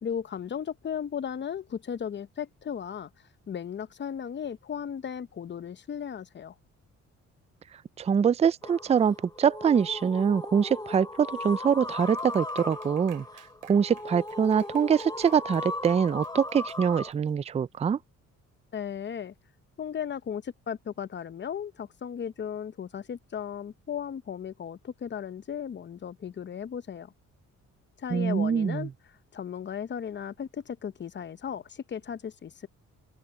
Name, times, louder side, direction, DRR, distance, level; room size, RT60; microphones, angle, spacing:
voice 1, 0.0-3.1 3.5-6.5 18.7-19.3 19.8-27.1 28.0-32.7, left 8 dB, 35° left, 0.7 m, -36 dB
voice 2, 8.0-13.2 13.7-18.0 28.1-28.9, right 7 dB, 20° right, 0.4 m, -24 dB
sound 1, 8.6-17.1, left 2 dB, 15° left, 1.9 m, -37 dB
Clapping, 12.0-17.3, right 13 dB, 80° right, 2.7 m, -56 dB
open air
cardioid pair, 90°, 30 cm